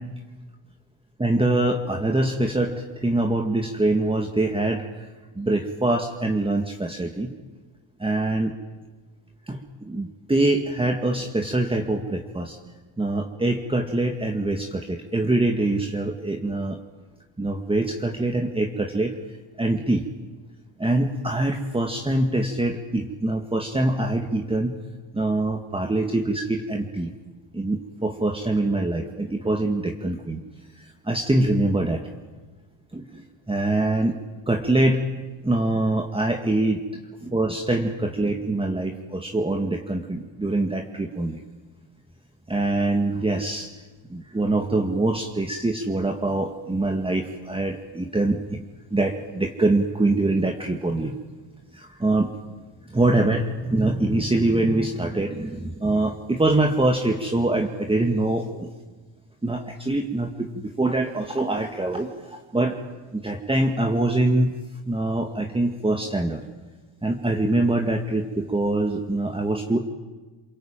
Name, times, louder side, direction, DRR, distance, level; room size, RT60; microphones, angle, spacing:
voice 1, 1.2-2.7 3.0-4.8 5.4-7.3 8.0-8.5 9.5-12.6 13.0-16.8 17.4-19.1 19.6-20.0 20.8-24.8 25.1-27.1 27.5-30.4 31.1-32.0 32.9-34.1 34.5-35.0 35.4-36.8 37.2-41.4 42.5-43.7 44.1-48.6 48.9-51.2 51.7-52.3 52.9-58.7 59.4-62.8 63.1-64.5 64.9-66.4 67.0-69.8, right 2 dB, 10° right, 3 dB, 2.2 m, -24 dB
27.5 x 23.0 x 9.1 m, 1.3 s
cardioid pair, 100°, 50 cm